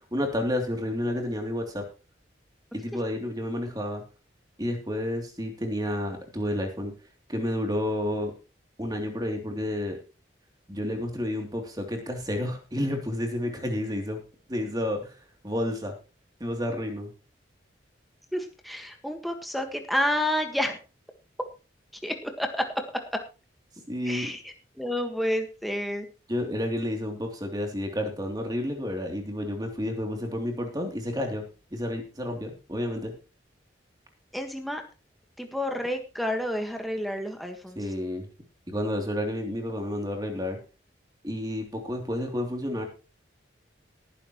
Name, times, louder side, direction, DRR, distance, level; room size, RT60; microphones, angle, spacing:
voice 1, 0.1-1.8 2.7-4.0 4.6-6.9 7.3-8.3 8.8-10.0 10.7-14.2 14.5-15.1 15.4-15.9 16.4-17.1 23.9-24.3 26.3-31.4 31.7-33.1 37.8-38.3 38.7-40.6 41.2-42.8, left 1 dB, 20° right, 3 dB, 3.0 m, -30 dB
voice 2, 18.3-20.8 22.0-22.7 24.0-26.1 34.3-34.8 35.4-37.8, left 1 dB, ahead, 4 dB, 1.5 m, -30 dB
18.5 x 10.0 x 3.1 m, 0.32 s
head